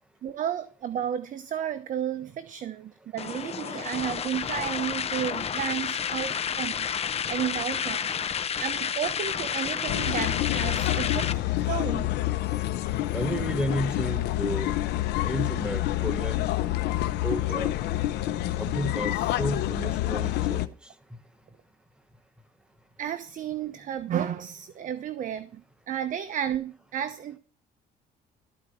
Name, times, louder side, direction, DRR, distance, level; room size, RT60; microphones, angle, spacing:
voice 1, 0.2-6.9 7.3-8.1 8.6-12.1 23.0-25.6 25.9-27.4, right 10 dB, 50° right, 0.8 m, -32 dB
sound 1, 3.2-11.3, left 7 dB, 35° left, 0.8 m, -30 dB
sound 2, 9.9-20.7, left 15 dB, 80° left, 0.9 m, -28 dB
voice 2, 13.1-14.7 15.2-16.5 17.2-17.7 18.6-20.7, right 1 dB, 5° right, 1.5 m, -32 dB
13.5 x 4.7 x 7.2 m
cardioid pair, 110°, 17 cm